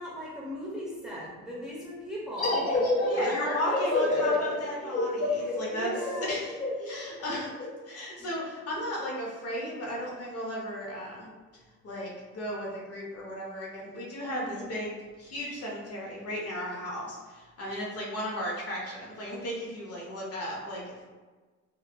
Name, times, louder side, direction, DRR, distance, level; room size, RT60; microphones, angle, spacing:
voice 1, 0.0-2.6 3.1-4.4 5.4-6.3 8.2-8.3 14.4-14.7, equal, ahead, -6 dB, 0.8 m, -39 dB
sound 1, 2.4-7.7, left 2 dB, 25° left, 0.9 m, -28 dB
voice 2, 3.0-6.5 6.8-7.5 7.9-11.3 11.8-21.0, equal, 50° left, -3 dB, 0.8 m, -35 dB
2.9 x 2.3 x 2.3 m, 1.3 s
cardioid pair, 90°, 30 cm